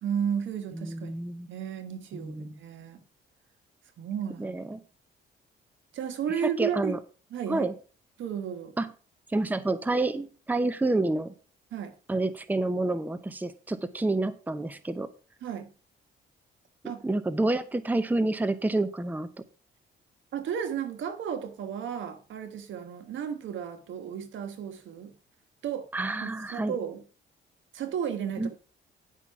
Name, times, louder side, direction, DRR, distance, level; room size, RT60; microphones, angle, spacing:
voice 1, 0.0-1.1 1.5-3.0 4.0-4.7 5.9-7.0 7.3-7.7 8.2-8.7 11.7-11.9 15.4-15.7 16.8-17.0 20.3-25.1 25.6-25.9 26.2-27.0 27.7-28.5, right 8 dB, 75° right, 1.5 m, -33 dB
voice 2, 0.7-1.5 2.1-2.6 4.4-4.8 6.6-7.0 7.5-7.7 8.8-8.9 9.3-11.3 12.1-15.1 17.0-19.3 25.9-26.8 28.4-28.5, right 2 dB, 10° right, 0.7 m, -28 dB
10.0 x 5.8 x 4.7 m
cardioid pair, 90°, 20 cm